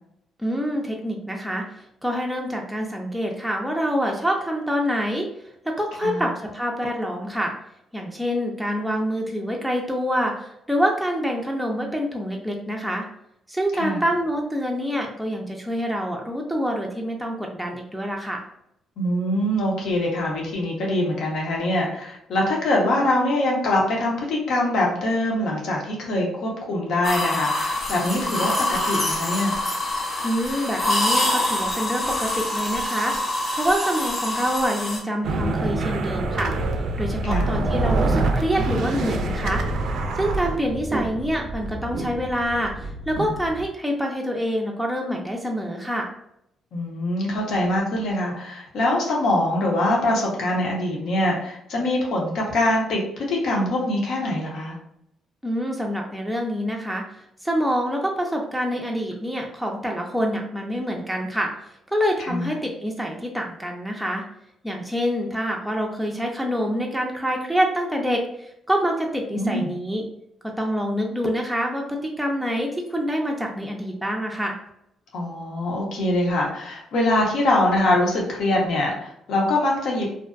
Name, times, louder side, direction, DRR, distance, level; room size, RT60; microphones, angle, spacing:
voice 1, 0.4-1.6 2.0-5.3 5.6-7.5 7.9-13.0 13.5-18.4 30.2-33.2 33.5-36.5 37.0-39.6 40.2-46.1 55.4-57.0 57.4-61.5 61.9-64.2 64.6-70.1 70.4-74.6, equal, ahead, 0 dB, 0.4 m, -26 dB
voice 2, 19.0-29.6 37.2-37.6 46.7-54.8 62.2-62.5 69.4-69.7 75.1-80.1, left 1 dB, 75° left, -1 dB, 0.8 m, -23 dB
sound 1, 27.0-35.0, left 1 dB, 30° left, 0.8 m, -25 dB
sound 2, 35.2-43.7, right 2 dB, 70° right, 0.3 m, -26 dB
2.5 x 2.1 x 2.4 m, 0.77 s
cardioid pair, 90°, 0 cm